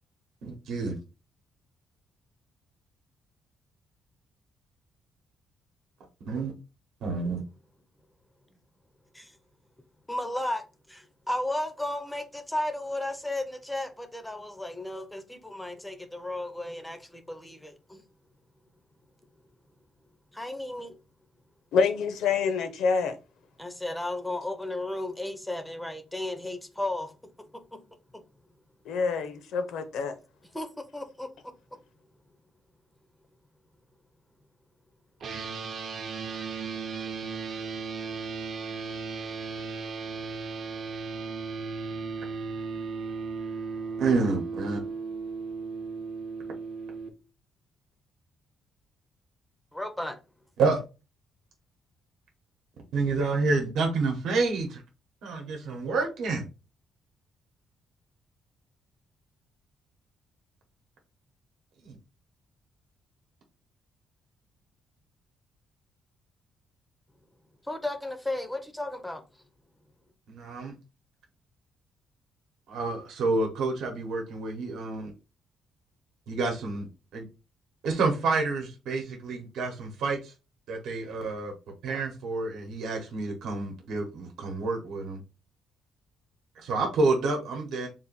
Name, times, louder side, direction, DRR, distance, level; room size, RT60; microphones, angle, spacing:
voice 1, 0.4-1.0 6.2-6.5 7.0-7.4 44.0-44.8 50.6-50.8 52.9-54.8 55.2-56.4 61.8-62.0 70.3-70.7 72.7-75.1 76.3-76.9 77.1-77.2 77.8-80.3 80.7-81.5 81.8-85.2 86.6-87.9, right 3 dB, 70° right, 1.0 m, -28 dB
voice 2, 10.1-18.0 20.3-21.0 23.6-27.1 27.5-27.8 28.1-28.2 30.5-31.5 39.3-39.4 49.7-50.2 67.6-69.2, left 1 dB, 5° left, 0.5 m, -34 dB
voice 3, 21.7-23.2 28.9-30.1, left 5 dB, 70° left, 0.7 m, -26 dB
sound 1, 35.2-47.1, right 4 dB, 45° right, 0.6 m, -36 dB
3.8 x 2.5 x 4.0 m
cardioid pair, 175°, 0 cm